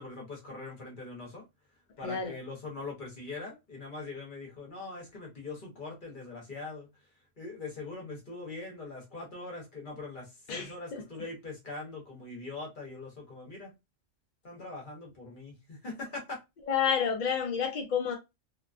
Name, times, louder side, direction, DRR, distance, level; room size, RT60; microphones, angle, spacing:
voice 1, 0.0-1.4 2.0-6.9 7.4-13.7 14.4-16.4, left 3 dB, 45° left, 1.0 m, -42 dB
voice 2, 2.0-2.3 10.5-11.0 16.7-18.1, left 7 dB, 65° left, 0.4 m, -30 dB
2.7 x 2.2 x 2.4 m
omnidirectional pair, 1.3 m